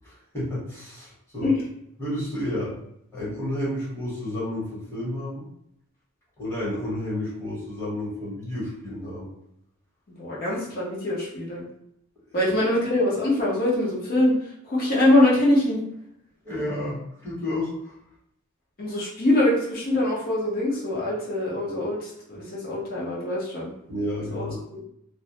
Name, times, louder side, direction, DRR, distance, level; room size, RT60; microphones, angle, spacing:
voice 1, 0.0-1.5 2.0-2.7 3.1-5.5 6.4-9.3 16.4-17.9 23.9-24.6, left 1 dB, 10° left, -9 dB, 1.0 m, -31 dB
voice 2, 10.2-11.6 12.3-14.3 14.6-15.8 18.8-23.7 24.3-24.8, left 1 dB, 45° left, -5 dB, 0.8 m, -23 dB
2.1 x 2.1 x 2.8 m, 0.73 s
head